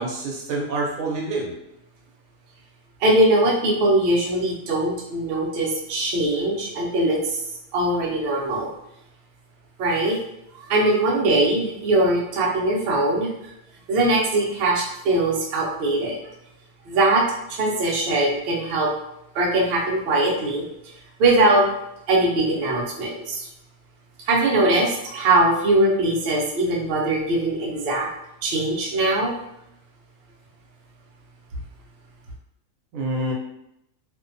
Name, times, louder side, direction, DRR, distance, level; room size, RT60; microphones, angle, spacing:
voice 1, 0.0-1.5 32.9-33.3, right 2 dB, 75° right, -1 dB, 1.0 m, -27 dB
voice 2, 3.0-7.4 7.7-8.7 9.8-10.2 10.6-13.3 13.9-16.2 16.9-18.9 19.3-20.6 21.2-21.7 22.1-23.5 24.3-28.1 28.4-29.3, right 2 dB, 60° right, -2 dB, 0.7 m, -21 dB
2.6 x 2.2 x 2.5 m, 0.81 s
omnidirectional pair, 1.5 m